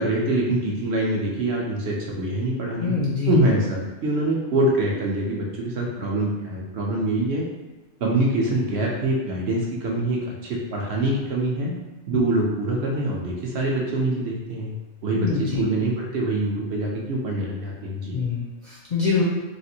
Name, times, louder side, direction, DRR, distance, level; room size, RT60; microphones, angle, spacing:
voice 1, 0.0-3.0 3.3-7.4 8.0-11.7 12.1-14.7 15.0-18.2, right 1 dB, 65° right, -2 dB, 0.8 m, -24 dB
voice 2, 2.8-3.4 12.1-12.2 15.1-15.6 18.1-19.2, left 5 dB, 50° left, -6 dB, 0.5 m, -25 dB
3.3 x 2.5 x 2.8 m, 1.2 s
omnidirectional pair, 1.3 m